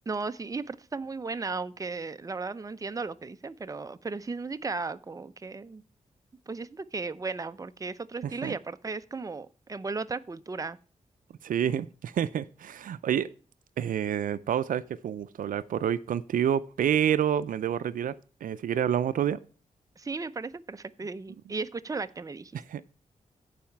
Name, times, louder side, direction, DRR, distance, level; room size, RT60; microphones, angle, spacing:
voice 1, 0.1-5.8 6.5-10.8 20.0-22.5, right 4 dB, 25° right, 0.6 m, -35 dB
voice 2, 8.2-8.6 11.4-13.3 13.8-18.1 18.4-19.4 22.7-22.8, right 9 dB, 80° right, 0.5 m, -28 dB
14.5 x 4.9 x 4.6 m
cardioid pair, 60°, 14 cm